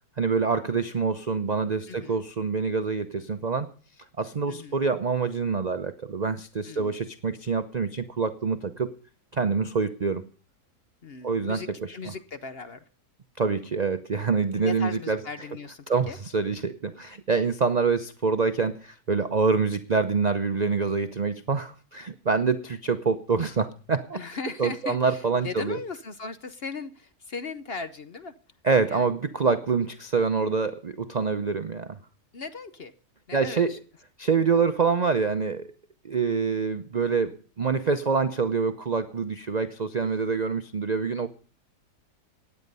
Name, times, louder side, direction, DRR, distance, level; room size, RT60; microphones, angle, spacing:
voice 1, 0.2-3.7 4.2-9.0 9.3-10.2 11.2-11.9 13.4-15.2 15.9-24.2 24.6-25.8 28.6-32.0 33.3-33.7 34.2-35.7 36.0-41.3, right 5 dB, 50° right, 10 dB, 0.5 m, -26 dB
voice 2, 1.9-2.3 4.5-4.8 6.6-7.0 11.0-11.7 11.9-12.8 14.6-16.2 24.1-28.3 28.9-29.1 32.3-32.9 33.3-33.8, left 4 dB, 50° left, 11 dB, 0.8 m, -38 dB
16.5 x 9.9 x 5.4 m, 0.41 s
omnidirectional pair, 1.7 m